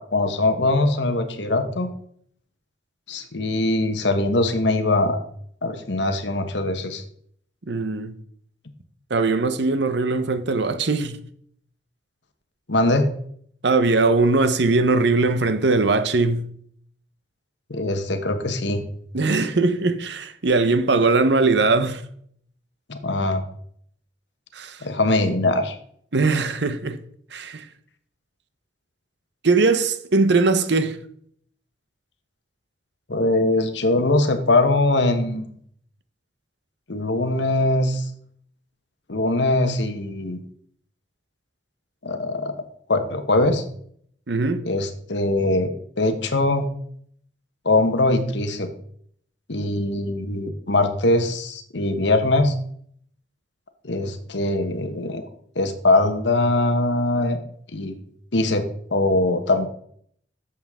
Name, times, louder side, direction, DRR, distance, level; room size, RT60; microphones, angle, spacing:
voice 1, 0.0-1.9 3.1-5.2 5.6-7.0 12.7-13.1 17.7-18.8 22.9-23.4 24.8-25.7 33.1-35.5 36.9-38.1 39.1-40.4 42.0-42.5 42.9-43.6 44.6-45.7 46.0-46.7 47.6-48.7 49.5-52.5 53.8-55.3 55.5-57.4 57.7-58.0 58.3-58.6 58.9-59.7, left 2 dB, 70° left, 1.2 m, -22 dB
voice 2, 7.7-8.1 9.1-11.2 13.6-16.4 19.1-22.0 24.5-24.8 26.1-27.0 27.3-27.6 29.4-31.0 44.3-44.6, right 3 dB, 65° right, 0.9 m, -20 dB
11.0 x 7.4 x 3.6 m
head